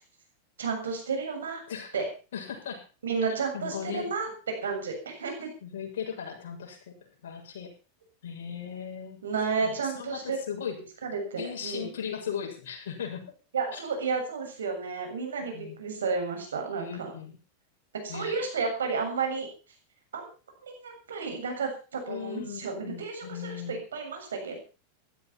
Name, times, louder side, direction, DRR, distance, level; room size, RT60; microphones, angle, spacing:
voice 1, 0.6-1.6 1.9-2.1 3.0-5.5 9.2-10.4 11.0-11.9 13.5-17.1 17.9-19.5 20.1-20.3 20.6-24.6, right 5 dB, 85° right, 4 dB, 7.3 m, -32 dB
voice 2, 2.3-2.8 3.5-4.1 5.6-6.9 7.2-7.7 8.2-9.2 9.6-10.8 11.4-13.3 13.7-13.8 15.5-15.8 16.8-17.4 18.1-18.4 22.1-23.8, left 8 dB, 75° left, 2 dB, 7.0 m, -37 dB
15.0 x 13.5 x 5.8 m, 0.36 s
hypercardioid pair, 100°, 0 cm